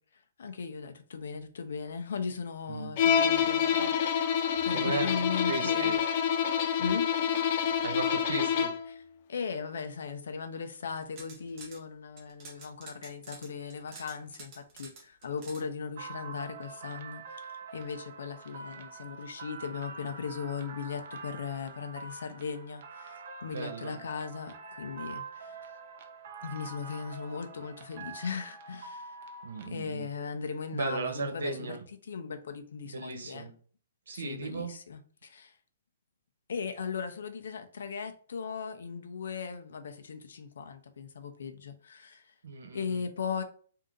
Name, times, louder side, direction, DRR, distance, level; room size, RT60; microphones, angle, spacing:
voice 1, 0.4-6.0 6.8-7.1 8.9-9.0 9.3-25.6 26.4-29.2 29.6-31.8 32.0-33.5 34.1-35.5 36.5-42.3 42.7-43.4, left 6 dB, 70° left, 0.7 m, -38 dB
Bowed string instrument, 3.0-8.9, left 8 dB, 35° left, 0.3 m, -27 dB
voice 2, 4.7-5.1 5.5-6.0 7.8-8.7 23.5-24.0 29.4-30.1 30.7-31.8 32.8-33.5 34.1-34.7 42.4-43.0, right 4 dB, 90° right, 1.2 m, -36 dB
sound 1, 10.9-11.8 12.2-15.6, right 4 dB, 25° right, 1.0 m, -49 dB
sound 2, 16.0-29.7, right 4 dB, 40° right, 0.6 m, -45 dB
3.8 x 2.7 x 3.8 m
hypercardioid pair, 175°, 0 cm